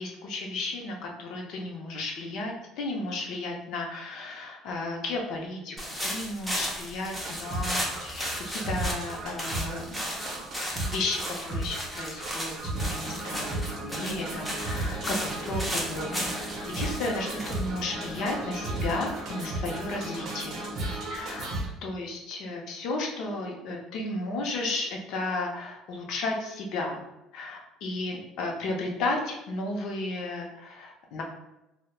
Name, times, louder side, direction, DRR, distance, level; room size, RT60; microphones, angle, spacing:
voice 1, 0.0-5.8 6.0-20.6 21.1-21.5 21.8-27.0 27.3-31.2, left 2 dB, 60° left, 1 dB, 0.5 m, -34 dB
sound 1, 5.8-18.6, equal, ahead, 0.4 m, -35 dB
sound 2, 7.2-21.7, right 1 dB, 50° right, 0.6 m, -34 dB
3.0 x 2.0 x 2.2 m, 0.94 s
cardioid pair, 150°, 0 cm